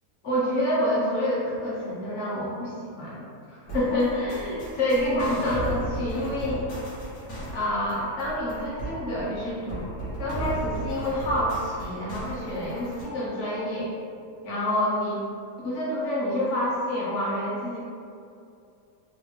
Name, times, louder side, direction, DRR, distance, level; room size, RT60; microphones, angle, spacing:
voice 1, 0.2-6.7 7.5-13.9 14.4-15.2 15.6-17.8, left 1 dB, 55° left, -6 dB, 1.1 m, -28 dB
sound 1, 3.6-13.0, right 2 dB, 80° left, 1.7 m, -36 dB
4.1 x 2.3 x 3.2 m, 2.5 s
omnidirectional pair, 1.6 m